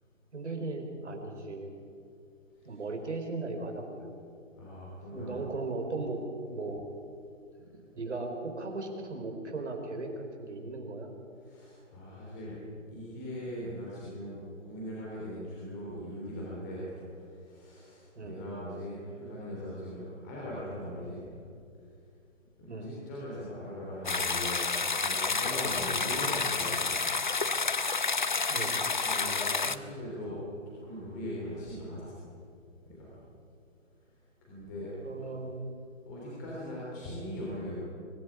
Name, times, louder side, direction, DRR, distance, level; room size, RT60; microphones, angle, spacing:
voice 1, 0.3-1.8 2.6-4.1 5.1-6.2 6.5-6.8 7.9-11.1 18.2-18.4 22.7-22.9 28.5-28.8 35.0-35.7, right 3 dB, 65° right, 4 dB, 4.6 m, -37 dB
voice 2, 4.5-5.4 7.7-7.8 11.4-12.6 12.9-21.2 22.6-24.6 25.0-27.0 28.9-30.4 30.7-32.2 32.8-33.1 34.4-34.9 36.1-37.8, equal, 15° left, -6 dB, 3.4 m, -40 dB
sound 1, 24.1-29.8, left 4 dB, 40° left, 0.6 m, -29 dB
23.5 x 13.5 x 10.0 m, 2.3 s
hypercardioid pair, 175°, 38 cm